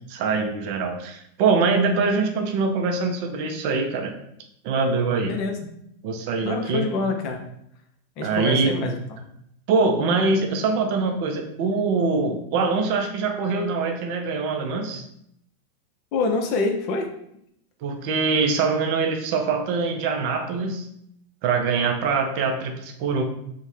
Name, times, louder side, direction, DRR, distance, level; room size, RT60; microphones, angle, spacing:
voice 1, 0.1-4.1 4.6-5.4 6.0-6.9 8.2-8.7 9.7-15.0 17.8-20.9 21.4-23.2, right 4 dB, 45° right, 4 dB, 0.4 m, -23 dB
voice 2, 5.3-5.6 6.4-7.4 8.2-8.9 16.1-17.1, left 3 dB, 40° left, 3 dB, 0.4 m, -25 dB
2.6 x 2.1 x 3.1 m, 0.74 s
figure-of-eight pair, 90°, 0 cm